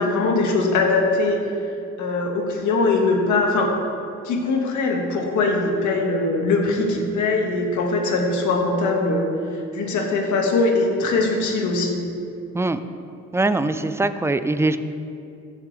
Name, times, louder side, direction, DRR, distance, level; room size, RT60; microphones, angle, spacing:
voice 1, 0.0-1.4 2.0-3.7 4.2-9.3 9.7-12.0, left 3 dB, 75° left, 1 dB, 1.6 m, -21 dB
voice 2, 13.3-14.8, right 2 dB, 10° right, 11 dB, 0.4 m, -22 dB
14.5 x 7.3 x 3.2 m, 2.5 s
cardioid pair, 90°, 30 cm